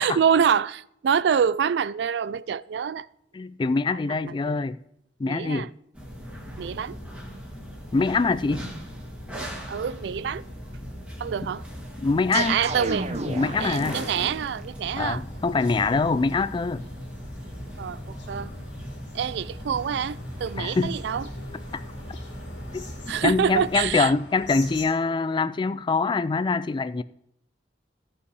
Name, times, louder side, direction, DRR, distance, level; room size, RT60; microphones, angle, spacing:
voice 1, 0.0-3.1 4.2-4.6 5.3-5.7 6.6-7.0 9.7-10.4 11.2-11.6 12.3-13.1 13.6-15.2 17.8-18.5 19.1-21.3 23.1-24.1, right 7 dB, 65° right, 0.3 m, -26 dB
voice 2, 3.3-4.8 5.2-5.7 7.9-8.7 11.4-11.5 12.0-12.6 13.3-14.0 15.0-16.8 20.6-20.9 21.7-21.8 22.7-27.0, left 4 dB, 25° left, 0.3 m, -24 dB
sound 1, 5.9-23.9, equal, 5° right, 1.8 m, -38 dB
sound 2, 12.3-14.6, right 3 dB, 35° right, 0.7 m, -33 dB
sound 3, 15.0-24.9, left 2 dB, 75° left, 2.5 m, -44 dB
15.0 x 5.6 x 4.7 m
head